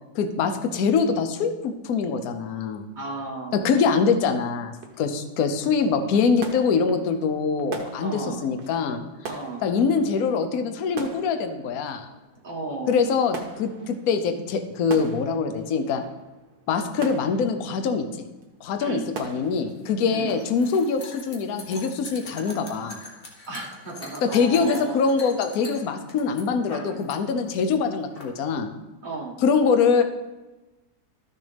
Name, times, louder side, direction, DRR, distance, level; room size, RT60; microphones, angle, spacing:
voice 1, 0.1-2.8 3.5-9.0 9.6-12.1 12.9-16.0 16.7-18.0 18.6-23.0 24.2-28.7 29.4-30.0, left 5 dB, 60° left, 7 dB, 1.1 m, -24 dB
voice 2, 2.9-3.8 8.0-8.4 9.3-9.6 12.4-13.0 18.8-19.0 20.1-20.3 23.5-25.0 29.0-29.4, right 3 dB, 25° right, -3 dB, 1.7 m, -34 dB
sound 1, 3.0-19.7, right 4 dB, 60° right, 1.5 m, -43 dB
sound 2, 19.4-27.2 27.4-28.2, left 2 dB, 35° left, 1.4 m, -42 dB
13.0 x 6.7 x 3.4 m, 1.1 s
omnidirectional pair, 2.0 m